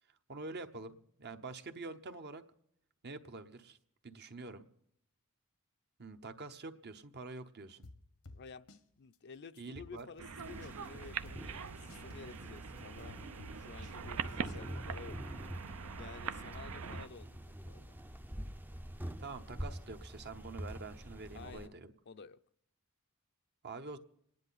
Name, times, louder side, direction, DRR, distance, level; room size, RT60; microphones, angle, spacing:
voice 1, 0.3-2.4 3.0-3.8 4.0-4.7 6.0-7.9 9.6-10.1 19.2-21.9 23.6-24.0, right 3 dB, 50° right, 1.0 m, -46 dB
sound 1, 7.8-8.8 9.1-9.2 9.6-10.9 11.2-14.6, left 2 dB, 85° left, 1.2 m, -53 dB
voice 2, 8.3-8.7 9.0-13.2 13.5-15.2 15.9-18.0 21.3-21.7 22.1-22.4, left 5 dB, 50° left, 0.5 m, -52 dB
sound 2, 10.2-17.1, right 6 dB, 70° right, 0.6 m, -43 dB
sound 3, 10.4-21.7, equal, 10° right, 0.5 m, -46 dB
27.0 x 10.5 x 4.1 m
head